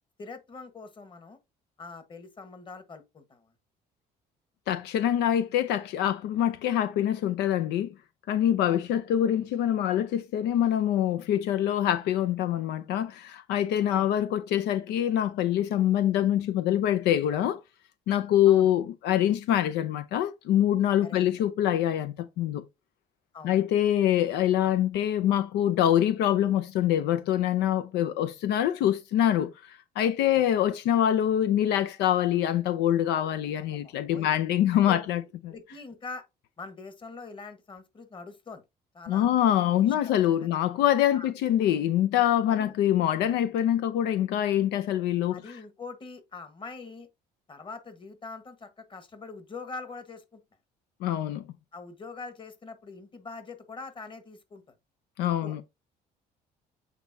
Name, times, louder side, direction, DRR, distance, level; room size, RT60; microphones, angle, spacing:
voice 1, 0.2-1.4 1.8-3.5 8.6-8.9 13.9-14.1 18.5-18.7 21.0-21.4 23.3-23.6 24.6-24.8 33.6-34.3 34.7-35.0 35.5-36.2 36.6-38.6 38.9-39.3 39.8-40.2 41.1-41.3 42.5-42.7 45.3-47.1 47.5-50.4 51.7-54.6 55.2-55.6, left 4 dB, 30° left, 1.4 m, -43 dB
voice 2, 4.7-7.9 8.3-17.6 18.1-22.6 23.4-35.5 39.1-45.4 51.0-51.4 55.2-55.6, left 11 dB, 85° left, 0.6 m, -25 dB
8.1 x 4.2 x 2.7 m
cardioid pair, 110°, 17 cm